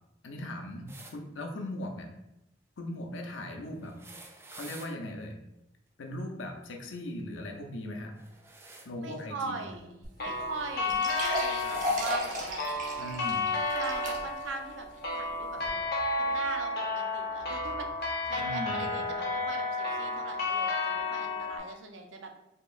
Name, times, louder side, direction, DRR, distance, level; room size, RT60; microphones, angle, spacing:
voice 1, 0.2-2.1 2.8-3.9 4.5-5.4 6.0-8.1 8.8-9.6 13.0-13.5 18.4-19.0, left 1 dB, 85° left, 3 dB, 0.6 m, -39 dB
sound 1, 0.9-1.2 3.8-4.9 8.1-8.9 10.3-10.5 11.1-12.2 13.2-13.3 14.5-14.6, right 2 dB, 15° right, 0.3 m, -49 dB
voice 2, 9.0-12.6 13.7-14.9 15.1-15.9 16.2-17.9 18.2-22.3, right 4 dB, 85° right, 4 dB, 0.5 m, -41 dB
sound 2, 10.0-10.1 10.4-10.5 10.9-14.5 15.0-15.1 15.6-15.7, equal, 45° right, 0.9 m, -34 dB
sound 3, 10.2-21.6, left 3 dB, 55° left, 0.9 m, -32 dB
4.4 x 3.0 x 2.4 m, 0.88 s
head